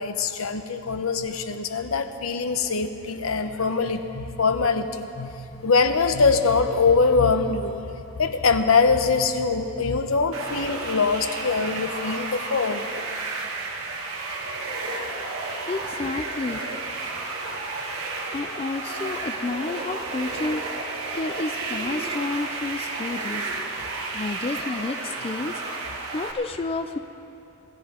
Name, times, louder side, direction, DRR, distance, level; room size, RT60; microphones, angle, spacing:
voice 1, 0.0-12.9, left 4 dB, 75° left, 8 dB, 0.8 m, -23 dB
sound 1, 10.3-26.3, right 3 dB, 80° right, 1.7 m, -32 dB
voice 2, 15.7-16.7 18.3-20.8 21.1-23.5 23.8-25.6 26.1-27.0, left 3 dB, 25° left, 8 dB, 0.3 m, -30 dB
22.5 x 13.5 x 3.6 m, 2.8 s
head